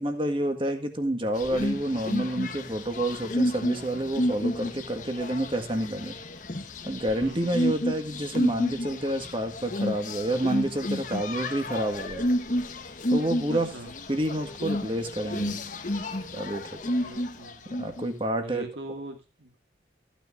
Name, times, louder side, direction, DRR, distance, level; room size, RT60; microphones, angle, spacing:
voice 1, 0.0-6.2 6.9-12.3 13.1-13.7 14.1-15.6 16.3-16.6 17.8-18.6, right 1 dB, 30° right, 6 dB, 1.8 m, -29 dB
sound 1, 1.3-18.1, left 1 dB, 45° left, 1.2 m, -31 dB
voice 2, 7.2-7.8 13.5-13.9 16.9-17.7 18.4-19.5, right 2 dB, 80° right, 5 dB, 2.1 m, -42 dB
15.0 x 9.3 x 2.5 m, 0.27 s
head